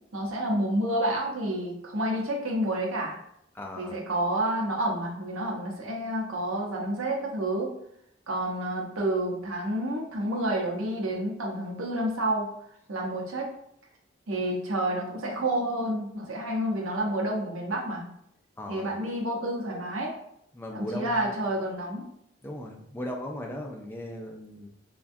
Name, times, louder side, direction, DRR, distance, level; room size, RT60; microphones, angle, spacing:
voice 1, 0.1-3.2 3.8-7.8 8.3-12.5 12.9-13.5 14.3-18.1 18.7-20.2 20.7-22.0, right 1 dB, 85° right, -1 dB, 0.7 m, -29 dB
voice 2, 3.5-3.9 18.6-18.9 20.5-21.4 22.4-24.7, left 1 dB, 10° left, 0 dB, 0.3 m, -37 dB
3.4 x 2.2 x 2.6 m, 0.75 s
head